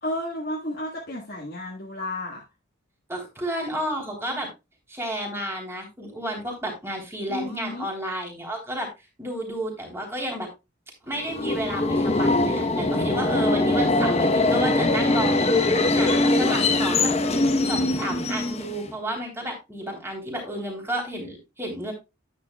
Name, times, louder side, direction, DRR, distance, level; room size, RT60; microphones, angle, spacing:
voice 1, 0.0-2.4 7.3-7.9, left 1 dB, 50° left, 1.7 m, -32 dB
voice 2, 3.1-4.5 4.9-8.9 9.2-10.5 11.1-15.5 15.9-17.1 17.7-21.9, equal, 10° right, 3.4 m, -31 dB
Subway metro underground, 11.2-18.9, left 2 dB, 30° left, 0.9 m, -22 dB
10.5 x 9.1 x 2.3 m
head